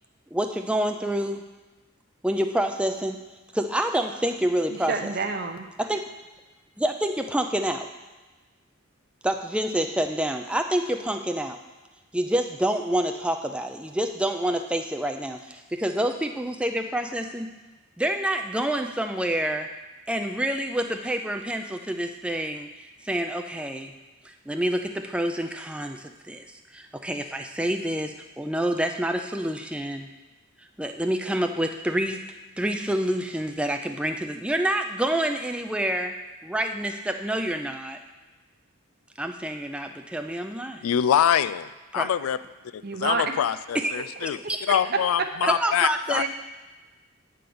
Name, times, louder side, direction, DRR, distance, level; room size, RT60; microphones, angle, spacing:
voice 1, 0.3-1.4 2.2-3.2 3.5-4.9 5.8-6.0 6.8-7.9 9.2-11.6 12.1-17.5 18.0-19.7 20.1-22.7 23.0-23.9 24.2-26.5 26.7-30.1 30.8-32.2 32.6-36.1 36.4-38.0 39.2-40.9 41.9-42.1 43.7-44.1 44.5-44.6 45.6-46.3, right 1 dB, 5° right, 5 dB, 0.4 m, -27 dB
voice 2, 4.7-5.7 42.8-43.4 44.4-44.5 46.1-46.3, right 4 dB, 50° right, 5 dB, 0.7 m, -29 dB
voice 3, 40.8-42.4 42.7-44.4 44.7-46.2, left 9 dB, 85° left, 15 dB, 0.3 m, -25 dB
9.2 x 3.8 x 6.8 m, 1.2 s
head